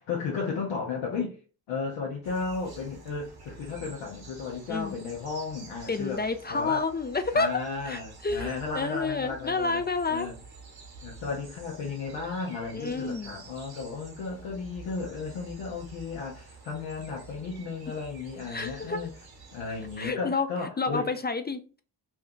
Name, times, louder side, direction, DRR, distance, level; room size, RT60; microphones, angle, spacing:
voice 1, 0.1-1.4 1.7-6.2 6.5-6.8 7.3-9.8 10.1-10.4 11.0-19.1 19.5-21.1, left 4 dB, 90° left, 0.7 m, -34 dB
sound 1, 2.2-20.1, right 4 dB, 55° right, 1.0 m, -49 dB
voice 2, 5.9-10.3 12.7-13.3 18.5-19.0 20.0-20.5 20.8-21.8, left 4 dB, 25° left, 0.4 m, -29 dB
2.7 x 2.3 x 3.5 m
supercardioid pair, 40°, 44 cm